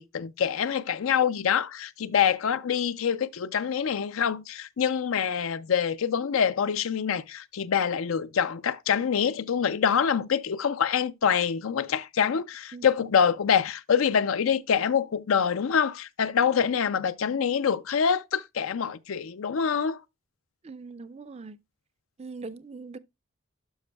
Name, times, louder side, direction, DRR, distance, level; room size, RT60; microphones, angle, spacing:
voice 1, 0.0-20.0, left 7 dB, 80° left, 0.5 m, -25 dB
voice 2, 20.6-21.6 22.2-23.0, right 4 dB, 30° right, 0.3 m, -41 dB
12.0 x 5.3 x 2.2 m
head